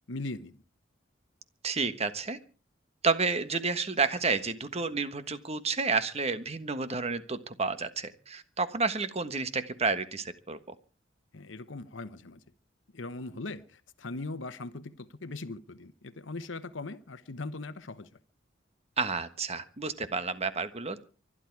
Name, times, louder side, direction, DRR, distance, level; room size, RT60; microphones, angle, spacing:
voice 1, 0.1-0.6 11.3-12.4 12.9-18.1, left 2 dB, 90° left, 1.0 m, -40 dB
voice 2, 1.6-2.4 3.0-10.7 19.0-21.0, right 4 dB, 35° right, 1.4 m, -30 dB
24.5 x 11.0 x 4.7 m
head